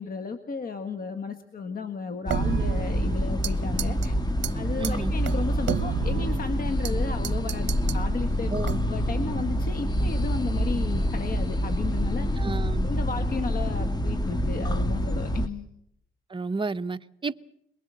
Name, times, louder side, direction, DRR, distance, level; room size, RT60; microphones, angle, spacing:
voice 1, 0.0-4.2 4.5-8.6 8.8-12.3 12.8-15.7, left 4 dB, 45° left, 1.7 m, -34 dB
sound 1, 2.3-15.5, equal, 20° left, 1.6 m, -27 dB
sound 2, 2.3-3.5 3.8-4.1 4.4-4.5 4.8-4.9 5.3-6.9 7.2-8.0 8.6-9.1, right 10 dB, 65° right, 0.9 m, -31 dB
voice 2, 4.8-5.1 8.5-8.8 12.4-12.9 16.3-17.4, right 3 dB, 25° right, 0.9 m, -31 dB
23.0 x 22.0 x 7.6 m
cardioid pair, 90°, 20 cm